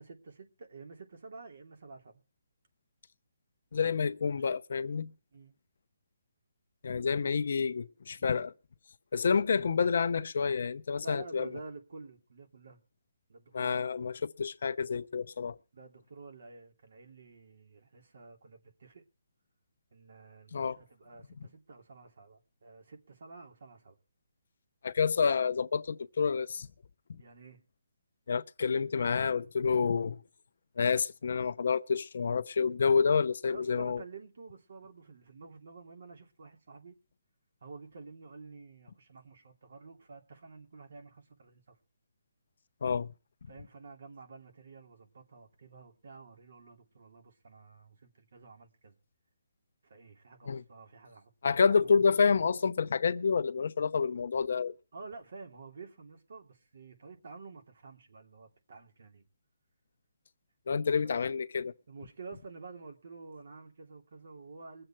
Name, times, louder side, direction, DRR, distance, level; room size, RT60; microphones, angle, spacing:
voice 1, 0.0-2.2 4.2-4.5 5.3-5.5 8.1-8.3 11.0-12.8 13.3-14.2 15.7-19.0 19.9-24.0 27.2-27.6 33.5-37.0 37.6-41.8 43.5-49.0 49.8-52.2 54.9-59.2 61.0-61.2 61.9-64.8, right 4 dB, 65° right, 2.9 m, -50 dB
voice 2, 3.7-5.1 6.8-8.5 9.1-11.5 13.5-15.6 20.5-20.8 24.8-26.7 27.1-27.2 28.3-30.2 30.8-34.0 42.8-43.1 50.5-50.6 51.4-54.7 60.7-61.7, left 5 dB, 60° left, 0.8 m, -28 dB
22.5 x 7.8 x 4.4 m
hypercardioid pair, 165°, 0 cm